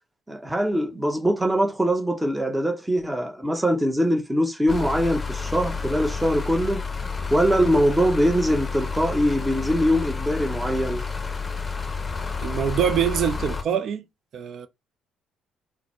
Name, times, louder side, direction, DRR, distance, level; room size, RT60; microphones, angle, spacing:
voice 1, 0.3-6.8 7.3-11.0, equal, 10° right, 0.8 m, -22 dB
sound 1, 4.7-13.6, left 5 dB, 25° left, 0.7 m, -30 dB
voice 2, 12.4-14.1 14.3-14.7, right 9 dB, 55° right, 0.4 m, -24 dB
3.9 x 2.1 x 2.9 m
hypercardioid pair, 50°, 0 cm